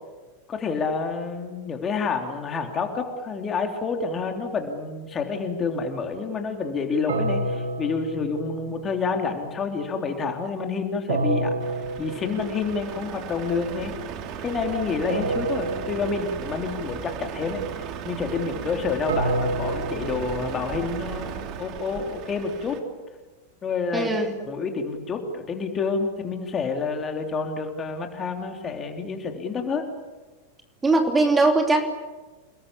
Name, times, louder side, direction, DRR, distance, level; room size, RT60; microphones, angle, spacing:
voice 1, 0.5-11.5 12.0-13.9 14.4-22.8 23.6-24.2 24.5-29.8, left 4 dB, 25° left, 4 dB, 3.4 m, -28 dB
sound 1, 7.1-9.1 11.1-12.9 15.1-16.9 19.1-21.3, right 2 dB, 65° right, 2.4 m, -29 dB
Truck, 11.6-22.8, right 8 dB, 40° right, 2.6 m, -36 dB
voice 2, 23.9-24.4 30.8-31.8, right 2 dB, 15° right, 4 dB, 2.9 m, -20 dB
29.0 x 20.5 x 8.6 m, 1.3 s
figure-of-eight pair, 90°, 0 cm